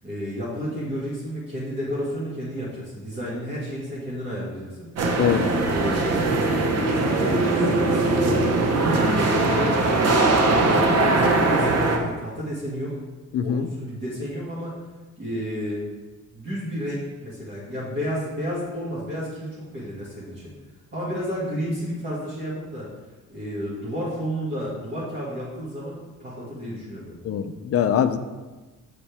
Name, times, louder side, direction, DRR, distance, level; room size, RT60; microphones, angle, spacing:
voice 1, 0.0-4.9 5.6-8.4 8.7-10.3 10.6-13.0 13.4-14.7 15.2-15.8 16.3-20.5 20.9-22.9 23.3-27.2, equal, 40° right, -9 dB, 2.0 m, -31 dB
sound 1, 5.0-12.0, right 2 dB, 55° right, 1.0 m, -21 dB
voice 2, 5.2-5.5 13.3-13.7 27.2-28.2, left 8 dB, 50° left, 10 dB, 0.5 m, -22 dB
7.1 x 6.7 x 3.5 m, 1.2 s
cardioid pair, 130°, 30 cm